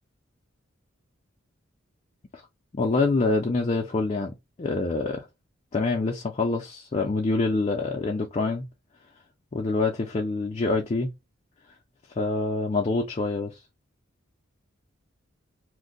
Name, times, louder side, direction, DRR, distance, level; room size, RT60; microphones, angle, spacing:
voice 1, 2.7-5.3 5.7-8.7 9.5-11.1 12.2-13.6, left 3 dB, 30° left, 0.4 m, -26 dB
2.6 x 2.1 x 3.8 m
head